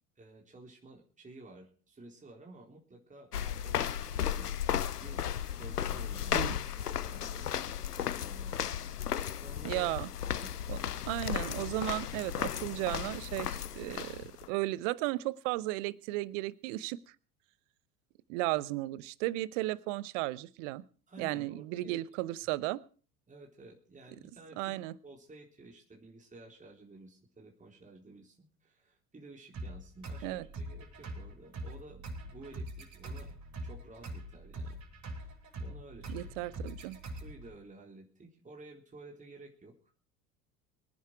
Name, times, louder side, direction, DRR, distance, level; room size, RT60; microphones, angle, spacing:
voice 1, 0.2-4.5 5.0-5.2 5.6-9.9 10.3-10.7 21.1-22.0 23.3-34.8 35.1-36.4 37.1-39.7, right 2 dB, 15° right, 0 dB, 3.9 m, -53 dB
sound 1, 3.3-14.5, left 9 dB, 85° left, 0.7 m, -35 dB
voice 2, 9.6-10.1 10.7-10.8 11.0-17.0 18.3-20.8 21.2-22.8 24.6-24.9 30.2-30.4 36.1-37.0, right 18 dB, 55° right, 20 dB, 1.0 m, -35 dB
sound 2, 29.5-37.5, right 1 dB, 35° right, 6.4 m, -43 dB
24.0 x 10.5 x 4.7 m, 0.40 s
figure-of-eight pair, 70°, 46 cm